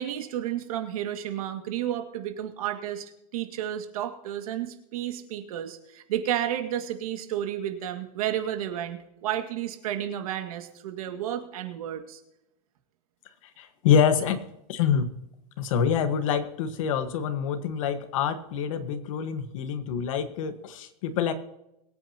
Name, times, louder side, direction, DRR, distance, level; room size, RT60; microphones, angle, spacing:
voice 1, 0.0-12.2, right 11 dB, 65° right, 6 dB, 2.0 m, -32 dB
voice 2, 13.6-15.1 15.6-21.3, left 7 dB, 55° left, 10 dB, 1.3 m, -26 dB
23.0 x 8.9 x 2.8 m, 0.86 s
supercardioid pair, 170°, 20 cm